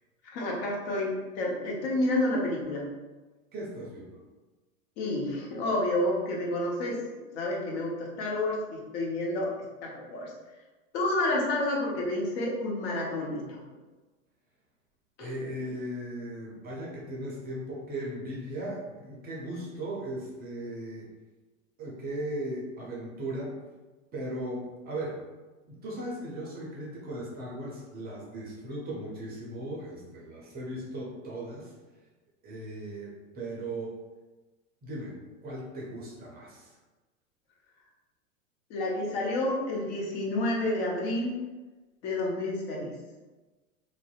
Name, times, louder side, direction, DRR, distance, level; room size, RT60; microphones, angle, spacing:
voice 1, 0.3-2.9 5.0-7.0 7.3-9.5 9.8-10.3 10.9-13.6 15.2-15.3 38.7-41.4 42.0-43.0, left 1 dB, 45° left, -2 dB, 0.8 m, -29 dB
voice 2, 3.5-4.2 15.2-21.1 21.8-23.6 24.1-25.2 25.7-31.7 32.4-33.9 34.8-35.2 35.4-36.8, right 1 dB, 25° right, -4 dB, 0.6 m, -37 dB
2.5 x 2.1 x 2.3 m, 1.2 s
hypercardioid pair, 100°, 41 cm